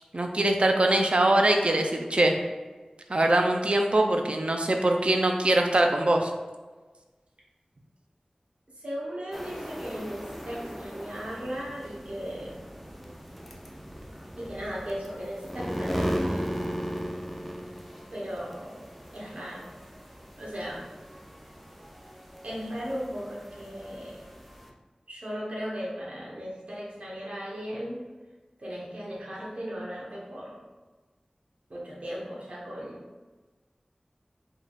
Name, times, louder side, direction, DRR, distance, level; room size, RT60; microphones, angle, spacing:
voice 1, 0.1-2.3 3.1-6.3, right 1 dB, 55° right, 3 dB, 0.5 m, -23 dB
voice 2, 8.8-12.6 14.4-16.5 18.1-18.8 19.1-19.7 20.4-20.8 22.4-24.3 25.1-28.0 28.6-30.6 31.7-33.0, equal, 75° right, -5 dB, 1.2 m, -37 dB
sound 1, 9.3-24.7, equal, ahead, 0.6 m, -37 dB
5.1 x 3.7 x 2.5 m, 1.3 s
wide cardioid pair, 50°, 2 cm